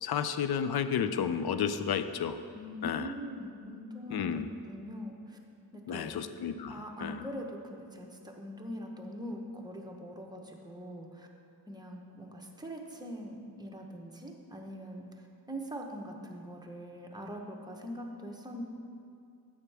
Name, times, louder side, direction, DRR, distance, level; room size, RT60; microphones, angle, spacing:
voice 1, 0.0-2.4 2.8-3.1 4.1-4.5 5.9-7.2, left 7 dB, 70° left, 10 dB, 0.5 m, -32 dB
voice 2, 2.5-5.4 5.7-6.2 6.7-11.3 11.7-18.6, equal, 10° right, 0 dB, 0.9 m, -42 dB
9.0 x 7.2 x 3.4 m, 2.4 s
wide cardioid pair, 100°, 39 cm